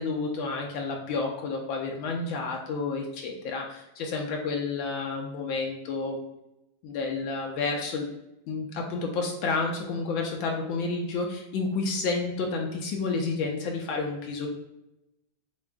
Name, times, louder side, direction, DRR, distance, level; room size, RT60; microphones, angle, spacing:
voice 1, 0.0-6.2 6.8-8.1 8.5-14.5, left 4 dB, 80° left, 1 dB, 1.4 m, -30 dB
7.0 x 3.0 x 2.3 m, 0.90 s
omnidirectional pair, 2.1 m